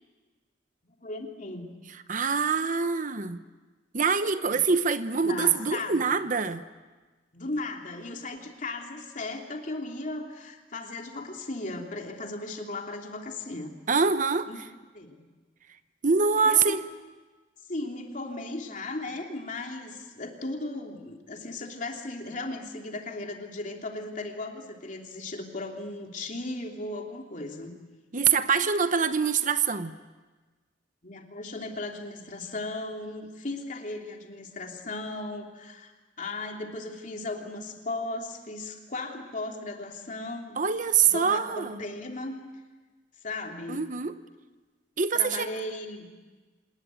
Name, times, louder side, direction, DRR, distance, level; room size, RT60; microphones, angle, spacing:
voice 1, 1.0-1.7 4.5-4.6 5.2-6.2 7.3-13.7 14.5-14.6 14.9-15.2 16.4-16.8 17.7-27.7 31.0-35.9 36.2-40.6 41.1-42.4 43.2-43.8 45.1-46.1, left 2 dB, 45° left, 2 dB, 3.1 m, -36 dB
voice 2, 2.1-3.4 3.9-6.6 13.9-14.5 16.0-16.8 28.1-30.0 40.6-41.8 43.7-44.2 45.0-45.5, right 5 dB, 45° right, 11 dB, 0.9 m, -24 dB
27.0 x 19.5 x 9.2 m, 1.3 s
head